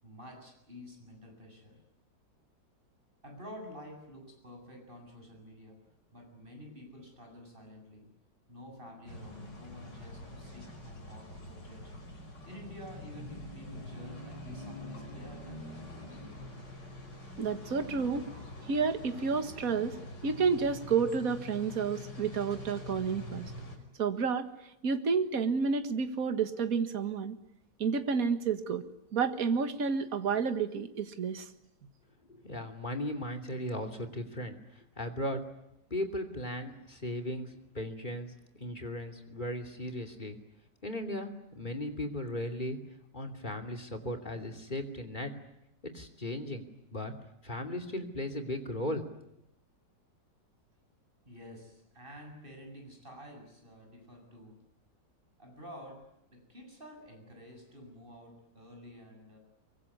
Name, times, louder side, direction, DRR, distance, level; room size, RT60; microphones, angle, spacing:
voice 1, 0.0-1.8 3.2-5.8 6.1-8.1 8.5-15.6 51.2-54.7 55.4-59.4, equal, 30° right, 3 dB, 8.0 m, -50 dB
sound 1, 9.1-23.8, left 1 dB, 75° left, 6.2 m, -45 dB
voice 2, 17.4-18.3 18.7-23.5 24.0-24.5 24.8-27.4 27.8-28.8 29.1-31.5, right 5 dB, 55° right, 9 dB, 2.1 m, -30 dB
voice 3, 32.2-35.4 35.9-38.3 38.6-40.4 40.8-42.8 43.1-45.3 45.8-46.6 46.9-47.1 47.4-49.2, left 1 dB, 25° left, 4 dB, 3.1 m, -37 dB
24.5 x 24.0 x 9.8 m, 0.83 s
omnidirectional pair, 1.9 m